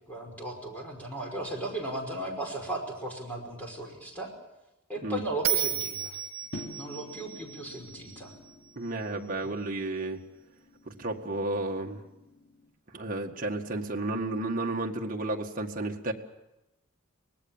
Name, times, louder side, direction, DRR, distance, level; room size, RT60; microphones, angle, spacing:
voice 1, 0.1-4.3 4.9-6.2 6.8-8.3, right 1 dB, 5° left, 0 dB, 5.3 m, -36 dB
Bell, 5.4-8.7, right 10 dB, 65° right, 2.3 m, -33 dB
sound 1, 6.5-12.7, left 2 dB, 55° left, 3.1 m, -49 dB
voice 2, 8.8-10.2 10.9-12.0 12.9-16.1, right 2 dB, 40° right, 1 dB, 1.9 m, -32 dB
24.5 x 19.5 x 7.3 m, 0.95 s
head